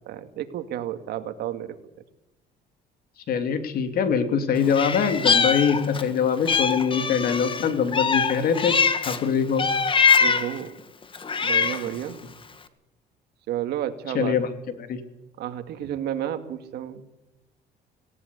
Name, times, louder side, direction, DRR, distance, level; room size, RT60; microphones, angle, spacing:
voice 1, 0.1-1.8 10.2-10.7 11.4-12.2 13.5-14.3 15.4-17.0, right 11 dB, 75° right, 8 dB, 2.3 m, -31 dB
voice 2, 3.3-8.8 9.0-9.7 14.1-14.5 14.9-15.0, left 7 dB, 60° left, 8 dB, 3.0 m, -23 dB
Meow, 4.7-6.1 6.5-9.2 9.6-10.6 11.1-12.0, left 5 dB, 30° left, 1.8 m, -23 dB
18.5 x 18.0 x 8.4 m, 0.94 s
cardioid pair, 110°, 17 cm